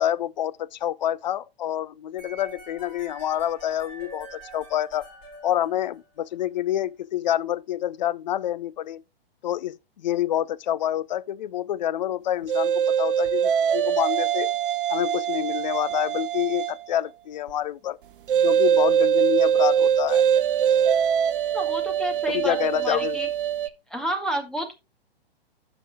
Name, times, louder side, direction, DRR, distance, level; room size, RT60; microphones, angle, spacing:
voice 1, 0.0-5.0 5.4-9.0 9.4-14.5 14.9-18.0 18.4-20.2 22.3-23.2, left 11 dB, 45° left, 0.5 m, -27 dB
sound 1, 2.2-6.3, right 2 dB, 25° left, 6.0 m, -45 dB
sound 2, 12.5-16.9 18.3-23.7, right 9 dB, 60° right, 0.7 m, -23 dB
voice 2, 21.5-23.3 23.9-24.8, right 1 dB, ahead, 1.1 m, -30 dB
16.0 x 5.9 x 2.3 m
figure-of-eight pair, 115°, 31 cm